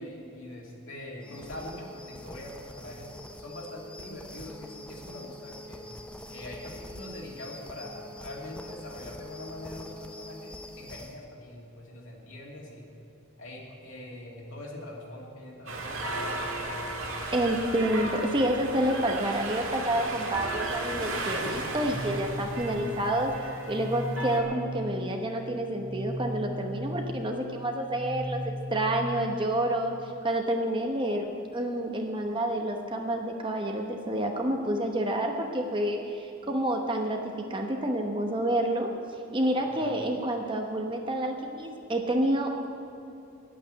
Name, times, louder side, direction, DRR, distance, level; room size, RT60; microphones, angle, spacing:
voice 1, 0.0-3.1 3.4-5.8 6.3-12.9 13.4-16.9 17.3-17.8 39.6-40.0, left 1 dB, 65° left, -3 dB, 2.7 m, -43 dB
sound 1, 1.2-11.2, left 1 dB, 5° left, 0.5 m, -45 dB
sound 2, 15.7-24.4, right 2 dB, 65° right, 1.9 m, -35 dB
voice 2, 17.3-23.3 23.7-31.3 31.5-38.9 39.3-42.7, right 1 dB, 20° right, 3 dB, 0.9 m, -29 dB
sound 3, 21.9-29.5, equal, 40° left, 2.1 m, -37 dB
11.0 x 8.7 x 9.1 m, 2.9 s
head